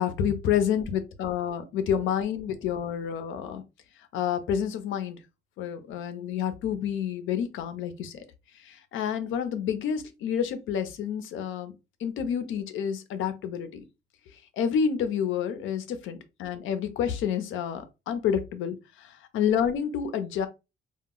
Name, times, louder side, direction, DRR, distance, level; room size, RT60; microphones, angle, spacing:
voice 1, 0.0-3.6 4.1-5.2 5.6-8.2 8.6-11.7 12.0-13.8 14.6-20.5, left 8 dB, 80° left, 0.6 m, -29 dB
2.2 x 2.0 x 3.7 m
cardioid pair, 90°, 20 cm